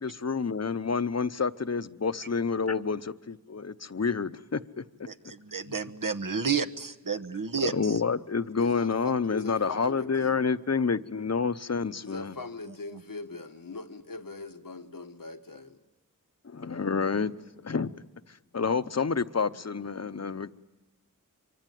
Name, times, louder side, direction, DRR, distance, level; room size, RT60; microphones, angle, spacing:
voice 1, 0.0-4.8 7.7-12.3 16.4-17.3 17.6-17.9 18.5-20.5, left 5 dB, 50° left, 0.8 m, -28 dB
voice 2, 5.1-8.0, right 5 dB, 75° right, 1.2 m, -31 dB
voice 3, 8.6-10.5 12.0-15.8, left 3 dB, 85° left, 1.3 m, -40 dB
25.0 x 24.0 x 9.3 m
wide cardioid pair, 45°, 33 cm